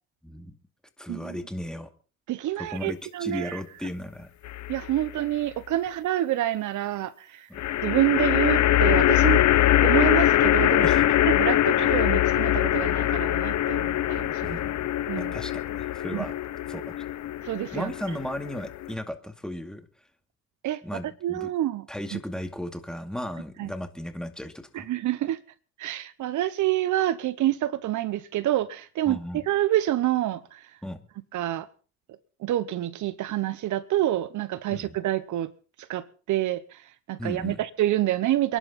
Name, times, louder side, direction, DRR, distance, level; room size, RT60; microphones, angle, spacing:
voice 1, 0.2-0.6 1.0-1.9 2.6-4.3 7.5-7.6 10.8-11.2 14.4-14.8 15.1-16.3 16.7-16.9 17.7-19.9 20.8-21.5 21.9-24.9 29.1-29.4 30.8-31.0 34.7-34.9 37.2-37.6, left 1 dB, ahead, 2.4 m, -35 dB
voice 2, 2.3-3.6 4.7-7.5 7.8-9.4 9.8-10.9 11.3-14.6 15.1-15.3 16.1-16.2 17.4-17.9 20.6-20.8 21.2-21.9 22.1-22.2 23.6-23.7 24.7-25.4 25.8-30.6 31.3-31.7 32.4-35.5 35.9-36.8 37.1-38.6, right 13 dB, 75° right, 1.0 m, -27 dB
sound 1, 4.4-5.1 7.6-18.9, left 13 dB, 65° left, 0.9 m, -23 dB
28.0 x 11.0 x 4.2 m
cardioid pair, 90°, 30 cm